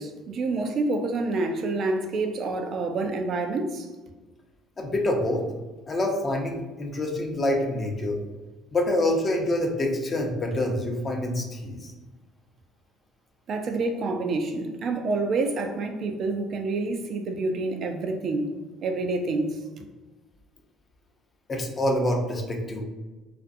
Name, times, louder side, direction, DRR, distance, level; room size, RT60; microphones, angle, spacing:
voice 1, 0.0-3.9 13.5-18.5 18.8-19.8, right 3 dB, 55° right, 0.3 m, -28 dB
voice 2, 4.8-5.4 5.9-8.2 8.7-11.9 21.5-22.8, left 1 dB, 40° left, 0.6 m, -26 dB
2.5 x 2.5 x 2.4 m
hypercardioid pair, 65°, 0 cm